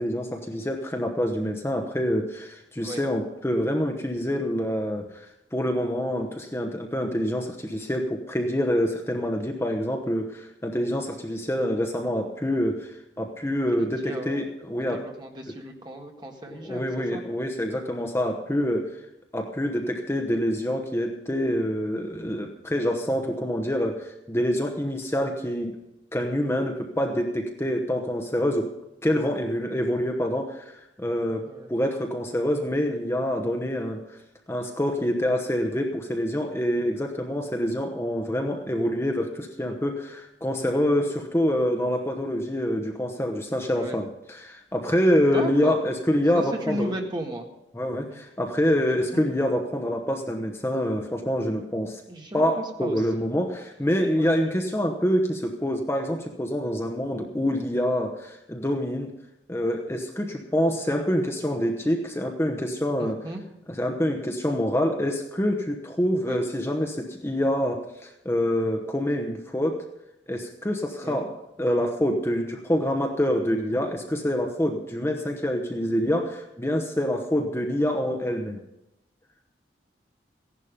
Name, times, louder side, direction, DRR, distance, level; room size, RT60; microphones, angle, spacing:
voice 1, 0.0-15.0 16.5-19.0 19.3-25.8 26.1-28.7 29.0-34.0 34.5-46.9 47.7-52.0 52.3-59.1 59.5-63.2 63.7-69.8 70.3-78.6, equal, 15° left, 3 dB, 1.0 m, -26 dB
voice 2, 13.8-14.4 14.9-17.2 31.5-31.7 43.7-44.0 45.3-45.7 46.3-47.4 48.1-48.2 49.1-49.2 52.1-53.0 54.2-54.3 63.0-63.4 66.3-66.4 71.0-71.3, right 1 dB, 25° right, 2 dB, 1.7 m, -35 dB
16.0 x 11.0 x 5.2 m, 0.88 s
head